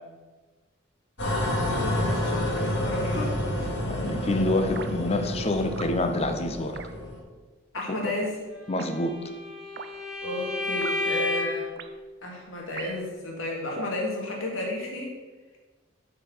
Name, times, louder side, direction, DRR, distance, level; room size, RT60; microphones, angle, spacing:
sound 1, 1.2-7.2, left 1 dB, 70° left, 2.3 m, -29 dB
voice 1, 1.4-3.3 7.7-8.4 10.2-11.7 12.2-15.2, left 1 dB, 90° left, -1 dB, 2.2 m, -32 dB
voice 2, 3.8-6.8 8.7-9.1, left 1 dB, 30° left, 7 dB, 0.7 m, -27 dB
sound 2, 4.8-4.9 5.8-6.0 6.8-6.9 7.8-7.9 8.8-8.9 9.8-9.9 10.8-11.0 11.8-11.9 12.8-13.1 13.8-14.0, right 5 dB, 55° right, 0.5 m, -40 dB
Bowed string instrument, 8.7-11.7, left 3 dB, 5° right, 1.3 m, -31 dB
8.1 x 5.0 x 6.2 m, 1.3 s
head